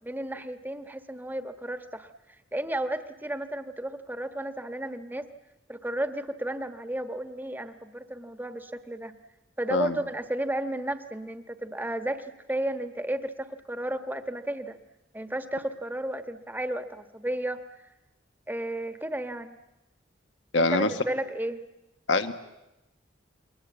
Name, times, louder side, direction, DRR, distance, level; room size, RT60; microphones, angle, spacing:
voice 1, 0.0-2.1 2.5-5.3 5.7-9.1 9.6-14.8 15.1-17.6 18.5-19.6 20.6-21.6, right 1 dB, 10° right, 9 dB, 1.3 m, -33 dB
voice 2, 20.5-20.9 22.1-22.3, left 2 dB, 75° left, 8 dB, 1.6 m, -24 dB
28.5 x 22.5 x 8.4 m, 0.95 s
head